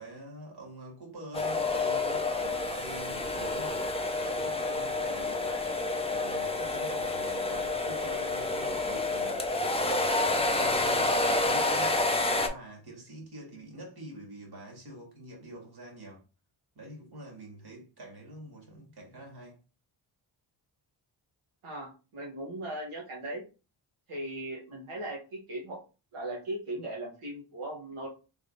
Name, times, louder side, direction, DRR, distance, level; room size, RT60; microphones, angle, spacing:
voice 1, 0.0-5.8 6.1-9.5 9.9-16.2 16.7-19.6, right 1 dB, 50° right, 2.0 m, -46 dB
sound 1, 1.3-12.5, left 2 dB, 10° left, 0.7 m, -29 dB
voice 2, 21.6-23.4 24.1-25.8 26.1-28.1, right 1 dB, 85° right, 1.2 m, -38 dB
3.6 x 3.3 x 2.5 m
supercardioid pair, 45°, 50 cm